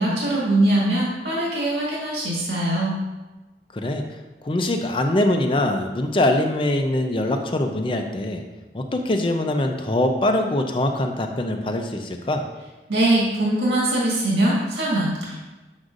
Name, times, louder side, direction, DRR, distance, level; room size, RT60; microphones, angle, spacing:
voice 1, 0.0-2.9 12.9-15.4, right 1 dB, 65° right, -6 dB, 1.8 m, -22 dB
voice 2, 3.7-4.0 4.4-8.4 8.7-12.4, left 1 dB, 30° left, 4 dB, 0.5 m, -23 dB
7.8 x 6.2 x 2.5 m, 1.2 s
head